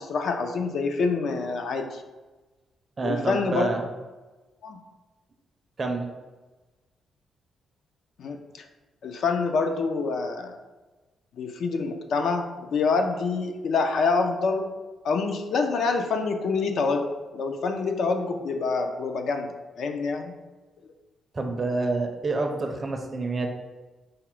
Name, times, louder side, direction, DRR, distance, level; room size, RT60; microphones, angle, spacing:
voice 1, 0.0-2.0 3.0-3.7 4.6-4.8 8.2-8.6 9.0-10.6 11.4-14.7 15.0-19.5 19.8-20.3, left 4 dB, 60° left, 5 dB, 0.4 m, -26 dB
voice 2, 3.0-3.8 5.8-6.1 21.3-23.5, right 3 dB, 25° right, 3 dB, 0.4 m, -28 dB
4.8 x 2.0 x 4.4 m, 1.2 s
wide cardioid pair, 170°, 0 cm